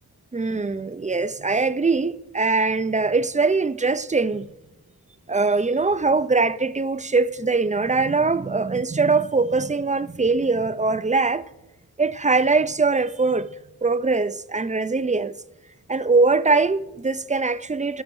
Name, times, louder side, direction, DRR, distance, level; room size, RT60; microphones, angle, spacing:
voice 1, 0.3-4.5 5.3-11.4 12.0-13.5 13.8-15.4 15.9-18.0, right 3 dB, 20° right, 0.4 m, -22 dB
17.5 x 6.4 x 3.1 m
wide cardioid pair, 85°, 37 cm